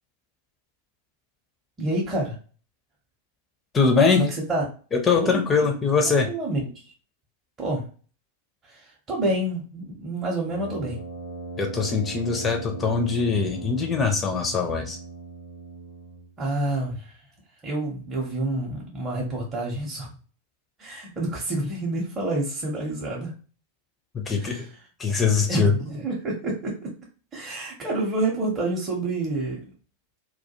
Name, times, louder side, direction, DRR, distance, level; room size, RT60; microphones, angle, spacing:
voice 1, 1.8-2.4 4.2-4.6 5.2-5.4 6.3-6.7 7.6-7.8 8.6-11.0 16.4-17.2 17.6-20.1 20.8-23.3 24.4-24.6 25.5-26.9 27.3-29.6, right 2 dB, 20° right, -3 dB, 0.7 m, -28 dB
voice 2, 3.7-4.2 4.9-6.3 11.6-15.0 24.1-24.7 25.0-25.7, left 5 dB, 20° left, 4 dB, 0.5 m, -22 dB
Brass instrument, 10.5-16.3, right 2 dB, 80° left, 0.5 m, -38 dB
2.2 x 2.2 x 2.8 m, 0.38 s
figure-of-eight pair, 90°, 0 cm